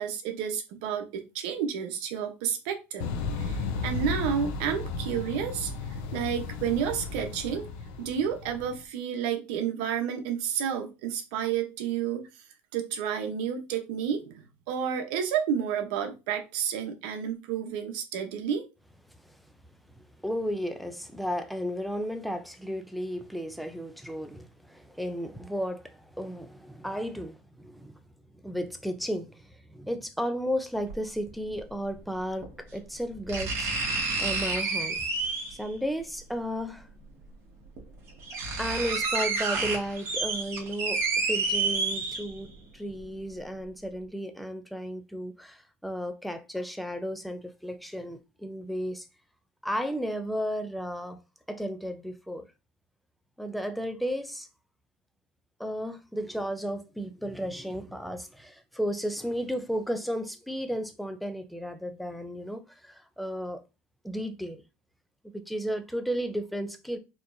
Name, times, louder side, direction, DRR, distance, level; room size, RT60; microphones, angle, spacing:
voice 1, 0.0-3.1 3.4-5.7 6.1-7.7 8.0-12.3 12.7-18.7, right 8 dB, 75° right, 0.9 m, -30 dB
sound 1, 3.0-8.8, left 4 dB, 75° left, 0.7 m, -34 dB
voice 2, 20.0-28.0 28.4-35.0 35.6-36.9 38.6-41.0 41.3-49.1 49.6-51.2 51.5-52.5 53.4-54.5 55.6-63.6 64.0-64.6 65.3-67.0, equal, ahead, 0.6 m, -34 dB
sound 2, 30.9-31.0 32.4-32.5 33.3-35.7 37.0-37.1 37.8-37.9 38.1-42.5 43.0-43.1, right 3 dB, 50° right, 1.4 m, -29 dB
4.3 x 3.0 x 2.6 m
supercardioid pair, 110°, 6 cm